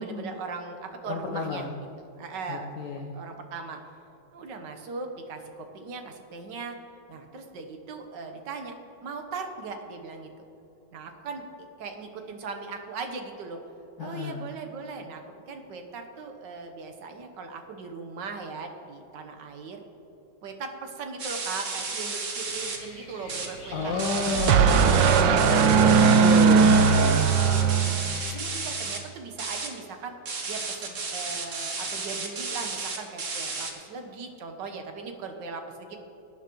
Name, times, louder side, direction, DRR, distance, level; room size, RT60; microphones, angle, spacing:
voice 1, 0.0-1.7 2.1-2.7 2.9-3.8 4.3-6.8 7.1-8.8 9.0-10.3 10.9-11.4 11.8-13.6 14.0-15.2 15.5-19.8 20.4-24.5 24.8-25.4 27.4-27.8 28.2-30.2 30.4-36.0, right 4 dB, 70° right, 5 dB, 1.7 m, -39 dB
voice 2, 1.1-1.7 2.5-3.1 14.0-14.5 23.7-27.3, left 4 dB, 70° left, 0 dB, 1.4 m, -30 dB
sound 1, 21.2-22.8 23.1-23.5 23.8-29.0 29.4-29.7 30.3-33.7, right 4 dB, 45° right, 1.5 m, -33 dB
sound 2, 22.6-28.4, left 2 dB, 40° left, 1.7 m, -45 dB
sound 3, 23.8-28.4, right 6 dB, 90° right, 1.3 m, -19 dB
18.0 x 9.8 x 3.1 m, 2.9 s
omnidirectional pair, 2.0 m